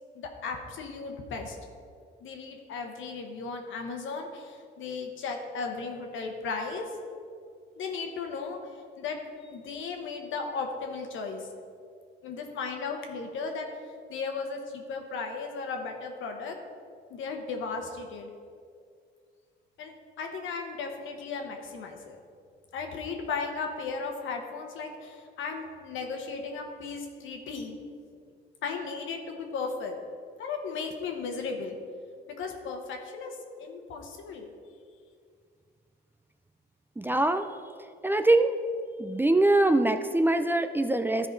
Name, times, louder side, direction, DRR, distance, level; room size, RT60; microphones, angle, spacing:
voice 1, 0.1-1.6 2.2-6.9 7.8-8.6 9.0-9.2 9.5-11.5 12.2-13.7 14.1-16.6 17.1-18.3 19.8-22.2 22.7-27.8 28.6-29.9 30.4-31.8 32.4-34.5, left 4 dB, 80° left, 3 dB, 1.2 m, -36 dB
voice 2, 37.0-37.5 38.0-38.5 39.0-41.3, right 2 dB, 10° right, 8 dB, 0.4 m, -23 dB
12.5 x 4.9 x 4.0 m, 2.2 s
cardioid pair, 90°, 20 cm